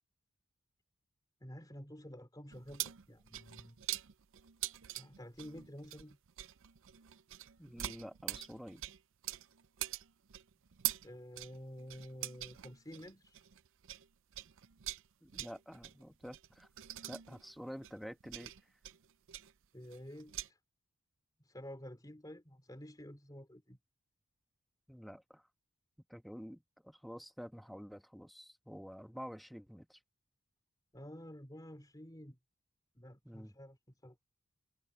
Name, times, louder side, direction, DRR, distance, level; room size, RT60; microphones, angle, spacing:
voice 1, 1.4-3.8 5.0-6.2 11.0-13.4 19.7-20.6 21.4-23.8 30.9-32.4 33.0-33.8 34.0-34.2, equal, 15° left, 3.5 m, -50 dB
sound 1, 2.5-14.1 14.3-20.5, right 14 dB, 60° right, 0.5 m, -44 dB
voice 2, 7.6-8.8 15.2-16.7 17.1-18.5 24.9-25.4 26.1-30.0 33.2-33.5, equal, ahead, 1.3 m, -49 dB
head